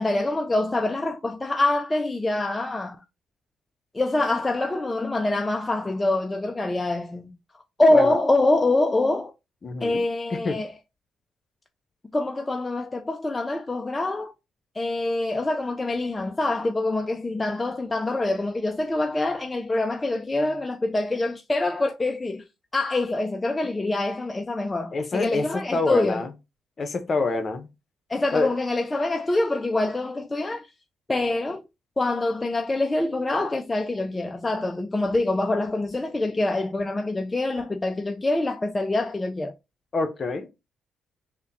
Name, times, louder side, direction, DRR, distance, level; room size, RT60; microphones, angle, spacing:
voice 1, 0.0-3.0 3.9-7.3 7.8-9.3 9.8-10.7 12.1-14.3 14.8-22.4 22.7-26.2 28.1-30.7 31.1-31.6 32.0-39.5, left 2 dB, 20° left, 0.3 m, -25 dB
voice 2, 9.6-10.6 24.9-26.3 26.8-27.7 28.3-28.6 39.9-40.5, left 3 dB, 40° left, 0.8 m, -26 dB
3.5 x 2.1 x 4.0 m
cardioid pair, 90°, 0 cm